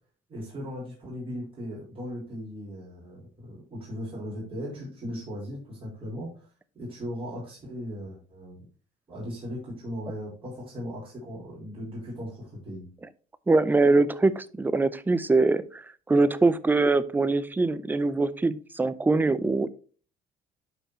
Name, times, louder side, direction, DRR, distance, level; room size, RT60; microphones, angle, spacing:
voice 1, 0.3-6.5 6.7-8.6 9.1-12.9, equal, 35° right, -5 dB, 4.5 m, -38 dB
voice 2, 13.5-15.8 16.1-19.7, right 3 dB, 10° right, 15 dB, 0.5 m, -23 dB
11.5 x 4.5 x 3.0 m, 0.39 s
cardioid pair, 110°, 17 cm